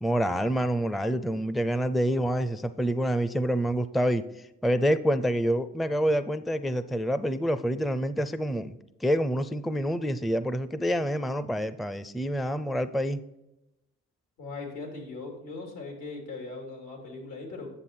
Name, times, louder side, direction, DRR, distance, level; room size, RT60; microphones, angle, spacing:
voice 1, 0.0-4.2 4.6-8.8 9.0-13.2, equal, ahead, 13 dB, 0.4 m, -27 dB
voice 2, 14.4-17.7, left 3 dB, 85° left, 1 dB, 3.2 m, -39 dB
9.9 x 7.0 x 4.3 m, 0.90 s
cardioid pair, 90°, 30 cm